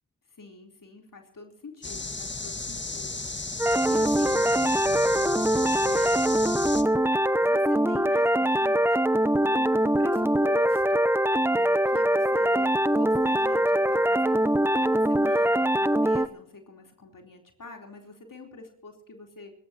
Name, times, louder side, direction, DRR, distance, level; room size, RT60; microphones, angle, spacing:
voice 1, 0.4-3.2 3.8-5.3 5.8-6.5 7.4-9.0 9.4-11.1 11.5-19.5, left 3 dB, 65° left, 2 dB, 3.9 m, -44 dB
sound 1, 1.8-6.8, left 3 dB, 30° left, 1.8 m, -34 dB
sound 2, 3.6-16.3, right 1 dB, 5° right, 0.8 m, -23 dB
25.5 x 14.5 x 3.0 m, 0.67 s
cardioid pair, 65°, 35 cm